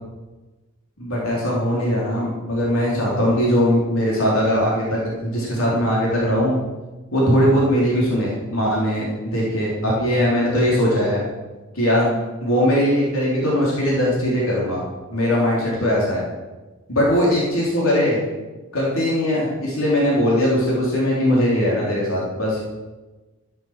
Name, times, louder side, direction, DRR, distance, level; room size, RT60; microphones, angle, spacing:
voice 1, 1.0-6.6 7.1-11.2 11.7-14.8 15.1-16.2 16.9-18.2 18.7-22.6, equal, 75° left, -5 dB, 3.9 m, -20 dB
12.5 x 8.8 x 7.4 m, 1.2 s
head